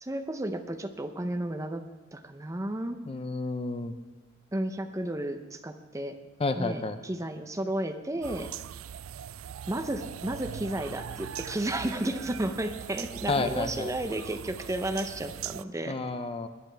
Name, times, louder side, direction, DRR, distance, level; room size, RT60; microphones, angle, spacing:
voice 1, 0.0-1.8 2.1-3.0 4.5-6.2 6.6-8.5 9.7-16.0, right 1 dB, 15° right, 8 dB, 0.6 m, -33 dB
voice 2, 3.1-3.9 6.4-7.0 13.3-13.9 15.9-16.5, left 3 dB, 25° left, 9 dB, 0.5 m, -30 dB
sound 1, 8.2-15.6, right 9 dB, 80° right, 0.3 m, -41 dB
19.0 x 11.5 x 3.4 m, 1.2 s
head